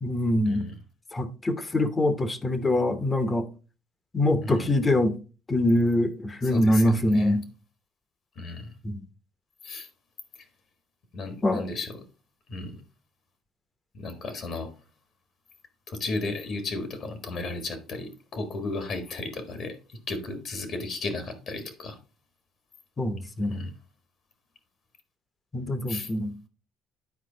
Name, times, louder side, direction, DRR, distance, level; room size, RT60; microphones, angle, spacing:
voice 1, 0.0-0.7 1.1-3.5 4.1-5.2 5.5-7.4 8.8-9.0 11.4-11.7 23.0-23.6 25.5-26.3, left 1 dB, 20° left, 0.8 m, -24 dB
voice 2, 4.4-4.7 6.4-7.4 8.3-8.7 9.6-9.9 11.1-12.0 12.5-12.8 13.9-14.7 15.9-22.0 23.4-23.7 25.9-26.1, left 2 dB, 50° left, 1.4 m, -34 dB
9.5 x 4.6 x 3.8 m
cardioid pair, 115°, 0 cm